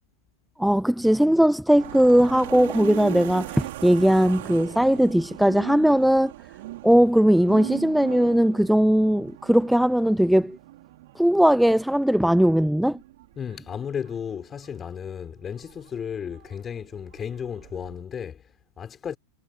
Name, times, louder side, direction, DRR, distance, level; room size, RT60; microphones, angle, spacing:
voice 1, 0.6-6.3 6.8-10.6 11.2-13.0, equal, ahead, 0.7 m, -19 dB
sound 1, 1.8-18.0, right 17 dB, 55° right, 4.9 m, -40 dB
voice 2, 13.4-19.2, left 7 dB, 20° left, 5.9 m, -34 dB
figure-of-eight pair, 90°, 0 cm